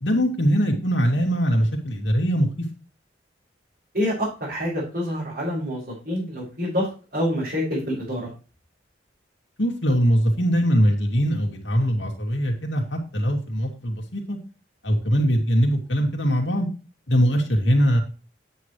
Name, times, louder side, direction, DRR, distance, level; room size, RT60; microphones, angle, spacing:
voice 1, 0.0-2.5 9.6-14.4 14.8-16.7 17.1-18.0, equal, 75° left, 2 dB, 2.6 m, -21 dB
voice 2, 3.9-6.9 7.1-8.3, equal, 50° right, -9 dB, 5.4 m, -26 dB
9.9 x 8.6 x 3.2 m, 0.34 s
head